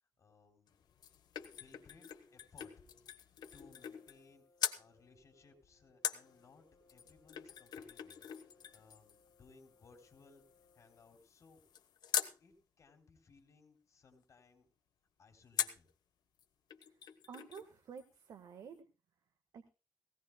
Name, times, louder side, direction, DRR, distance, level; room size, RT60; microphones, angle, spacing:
voice 1, 0.2-0.8 1.5-2.1 2.3-2.7 3.5-4.4 4.7-8.3 8.7-10.4 10.7-11.7 12.4-14.7 15.2-15.9, left 4 dB, 45° left, 4 dB, 3.6 m, -63 dB
sound 1, 0.7-4.3 4.6-4.9 6.0-12.4 15.6-15.9 16.4-16.5 16.7-17.7 18.0-18.1, left 9 dB, 85° left, 1.2 m, -43 dB
Brass instrument, 3.4-11.2, left 3 dB, 30° left, 7.8 m, -70 dB
voice 2, 17.3-18.9 19.5-19.7, right 6 dB, 70° right, 7 dB, 1.4 m, -51 dB
19.5 x 17.0 x 2.2 m, 0.31 s
wide cardioid pair, 135°, 7 cm